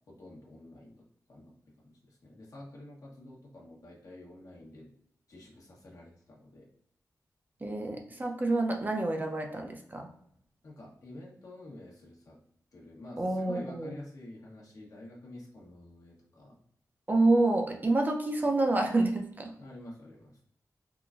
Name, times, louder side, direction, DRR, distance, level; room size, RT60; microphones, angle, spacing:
voice 1, 0.1-1.0 1.3-1.5 1.8-4.9 5.3-6.7 10.6-12.4 12.7-16.6 19.6-20.4, left 1 dB, 60° left, -2 dB, 1.0 m, -48 dB
voice 2, 7.6-10.1 13.2-13.9 17.1-19.6, right 2 dB, 30° right, 2 dB, 0.5 m, -28 dB
3.8 x 2.1 x 2.4 m, 0.70 s
wide cardioid pair, 80°, 6 cm